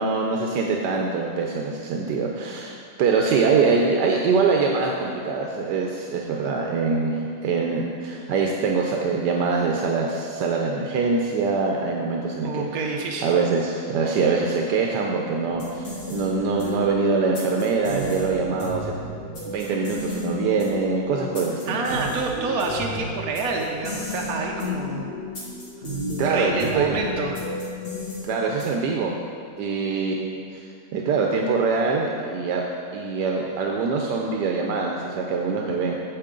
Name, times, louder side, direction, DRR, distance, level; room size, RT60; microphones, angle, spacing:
voice 1, 0.0-12.7 13.2-19.1 19.4-22.0 26.2-26.9 28.2-29.1 29.6-32.6 32.9-36.0, right 4 dB, 85° right, 0 dB, 1.3 m, -24 dB
voice 2, 12.4-13.3 21.7-25.1 26.2-27.4, right 3 dB, 65° right, 0 dB, 1.1 m, -27 dB
sound 1, 15.5-28.9, left 2 dB, 70° left, 2.5 m, -33 dB
9.1 x 7.6 x 3.8 m, 2.3 s
omnidirectional pair, 1.8 m